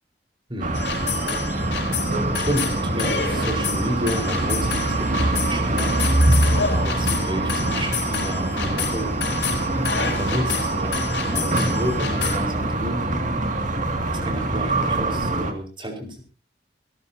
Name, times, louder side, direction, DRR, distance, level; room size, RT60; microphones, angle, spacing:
voice 1, 0.5-0.9 2.3-6.4 6.7-9.2 9.9-13.6 14.1-16.2, equal, 30° right, 3 dB, 4.5 m, -31 dB
sound 1, 0.6-15.5, right 2 dB, 45° right, 2.2 m, -24 dB
sound 2, 0.7-12.4, left 7 dB, 90° left, 4.1 m, -30 dB
26.0 x 13.5 x 2.8 m, 0.33 s
head